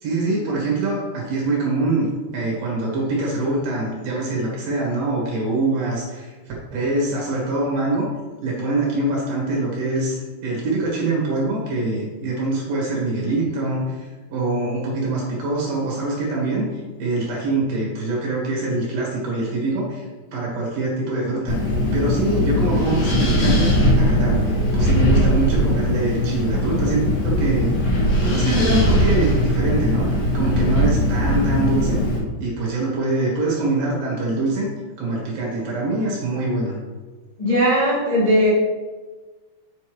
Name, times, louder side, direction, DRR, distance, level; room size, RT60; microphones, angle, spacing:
voice 1, 0.0-2.1 2.3-6.3 6.7-8.1 8.4-16.6 17.0-20.1 20.3-27.7 28.2-32.0 32.4-34.7 35.0-36.8, right 2 dB, 55° right, -4 dB, 3.1 m, -24 dB
Wind, 21.5-32.2, equal, 65° left, 4.3 m, -20 dB
voice 2, 37.4-38.5, equal, 85° left, -9 dB, 0.3 m, -18 dB
8.4 x 7.0 x 3.3 m, 1.3 s
omnidirectional pair, 5.8 m